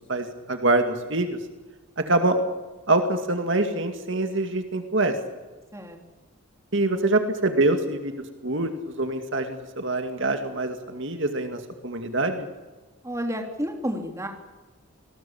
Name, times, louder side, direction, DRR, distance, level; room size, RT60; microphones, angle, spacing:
voice 1, 0.1-1.4 2.0-2.4 2.9-5.2 6.7-8.1 8.4-12.5, right 2 dB, 55° right, 6 dB, 2.3 m, -25 dB
voice 2, 13.0-14.3, equal, 15° right, 3 dB, 3.2 m, -30 dB
27.0 x 19.5 x 8.7 m, 1.2 s
head